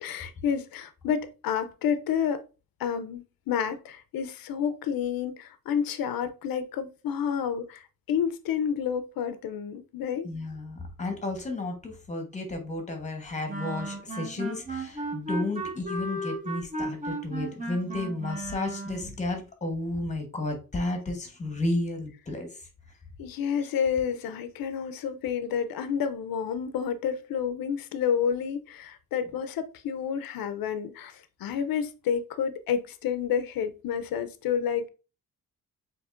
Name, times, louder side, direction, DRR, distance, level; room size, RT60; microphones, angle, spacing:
voice 1, 0.0-2.4 2.8-10.3 23.2-34.9, left 7 dB, 75° left, 0.6 m, -30 dB
voice 2, 10.2-22.5, left 2 dB, 20° left, 1.1 m, -32 dB
sound 1, 13.5-19.1, right 1 dB, 20° right, 0.9 m, -35 dB
7.0 x 3.0 x 2.4 m
wide cardioid pair, 180°, 35 cm